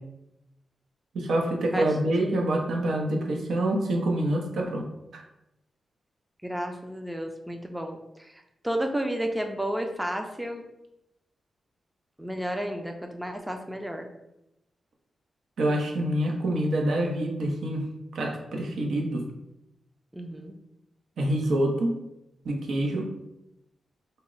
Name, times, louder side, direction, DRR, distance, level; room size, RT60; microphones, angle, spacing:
voice 1, 1.1-4.9 5.1-5.2 15.6-17.8 18.1-19.2 21.2-21.9 22.4-23.1, right 1 dB, 85° right, 1 dB, 0.6 m, -26 dB
voice 2, 2.2-2.5 6.4-8.3 8.6-10.6 12.2-14.1 20.1-20.5, equal, 5° right, 4 dB, 0.4 m, -32 dB
4.0 x 2.0 x 3.7 m, 0.88 s
wide cardioid pair, 110°, 0 cm